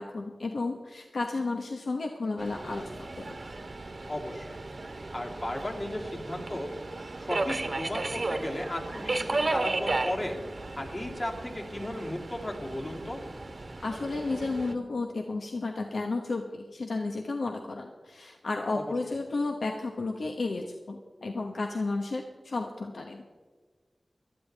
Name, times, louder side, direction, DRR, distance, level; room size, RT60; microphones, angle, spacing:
voice 1, 0.0-3.4 13.8-23.2, left 3 dB, 75° left, 3 dB, 1.0 m, -33 dB
Subway metro underground, 2.4-14.7, right 2 dB, 60° right, 1.2 m, -35 dB
voice 2, 4.1-4.6 5.0-6.7 7.2-10.4 10.8-13.2 18.7-18.9, left 1 dB, 35° left, -1 dB, 2.6 m, -35 dB
18.0 x 12.5 x 3.4 m, 1.5 s
wide cardioid pair, 60°, 0 cm